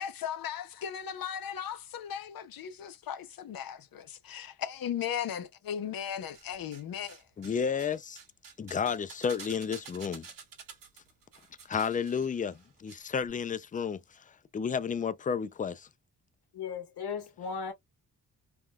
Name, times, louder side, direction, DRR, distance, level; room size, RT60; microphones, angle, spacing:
voice 1, 0.0-7.2, left 9 dB, 65° left, 0.7 m, -37 dB
sound 1, 6.0-6.8 7.1-13.0 13.2-13.3, right 6 dB, 55° right, 1.3 m, -50 dB
voice 2, 7.4-8.2 8.6-10.3 11.7-14.2 14.5-15.9, left 6 dB, 25° left, 0.3 m, -32 dB
voice 3, 16.5-17.7, left 5 dB, 85° left, 1.3 m, -36 dB
3.5 x 2.2 x 2.2 m
cardioid pair, 95°, 38 cm